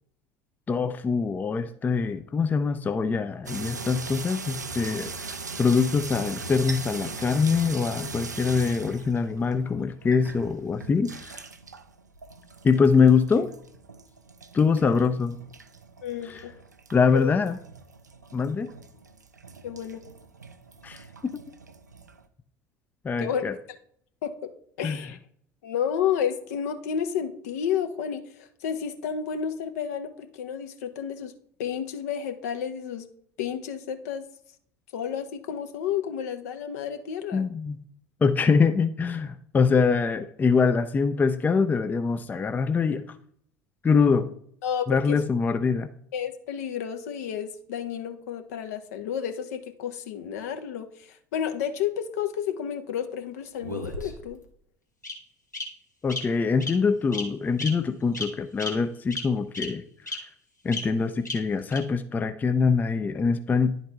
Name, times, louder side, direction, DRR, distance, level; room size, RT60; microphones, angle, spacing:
voice 1, 0.7-11.4 12.6-13.5 14.5-15.4 16.2-16.4 16.9-17.6 18.3-18.7 20.8-21.4 23.0-23.5 24.8-25.0 37.3-37.8 38.2-43.2 43.8-44.3 44.9-45.9 56.0-60.2 60.6-63.7, left 5 dB, 20° left, 10 dB, 0.4 m, -24 dB
sound 1, 3.5-22.2, right 4 dB, 85° right, 0.4 m, -40 dB
voice 2, 16.0-16.5 17.1-17.3 19.6-20.0 23.2-23.4 24.2-24.3 24.8-25.2 25.6-31.3 31.6-33.1 33.4-34.2 34.9-37.5 44.6-45.2 46.1-54.4, left 8 dB, 65° left, 7 dB, 0.7 m, -31 dB
Bird vocalization bird call bird song, 53.6-54.4 55.0-55.1 55.5-55.6 56.1-56.2 56.6-56.7 57.1-57.3 57.6-57.7 58.1-58.3 58.6-58.7 59.1-59.2 59.5-59.7 60.1-60.2 60.7-60.8 61.3-61.4 61.7-61.8, left 2 dB, 85° left, 1.0 m, -32 dB
10.5 x 4.0 x 3.4 m, 0.65 s
figure-of-eight pair, 65°, 9 cm